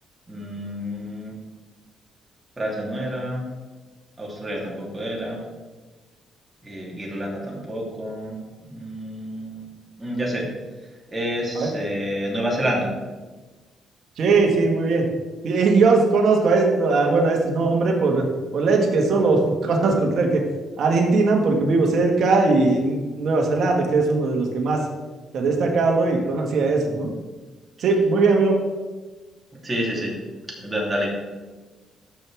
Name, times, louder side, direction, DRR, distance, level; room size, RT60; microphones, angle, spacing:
voice 1, 0.3-1.3 2.6-3.4 4.2-5.4 6.6-9.6 10.0-10.5 11.1-12.9 29.6-30.1 30.6-31.1, equal, 20° right, -3 dB, 3.2 m, -28 dB
voice 2, 14.2-15.1 15.4-18.3 18.5-20.4 20.8-24.8 25.3-27.1 27.8-28.6, right 3 dB, 65° right, 1 dB, 1.7 m, -19 dB
13.5 x 6.3 x 3.5 m, 1.3 s
cardioid pair, 90°, 0 cm